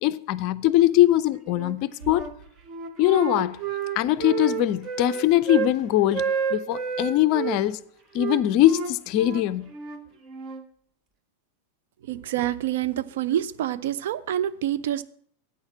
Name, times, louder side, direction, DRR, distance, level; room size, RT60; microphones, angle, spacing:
voice 1, 0.0-2.3 3.0-3.6 4.0-7.8 8.1-9.7, left 14 dB, 40° left, 0.4 m, -22 dB
Wind instrument woodwind instrument, 1.5-2.3 2.7-5.8 6.1-7.6 8.2-10.7, right 7 dB, 35° right, 0.9 m, -30 dB
sound 1, 2.0-3.9, right 5 dB, 90° right, 4.9 m, -47 dB
voice 2, 12.0-15.0, right 12 dB, 55° right, 0.4 m, -27 dB
8.6 x 6.4 x 7.1 m
figure-of-eight pair, 90°, 0 cm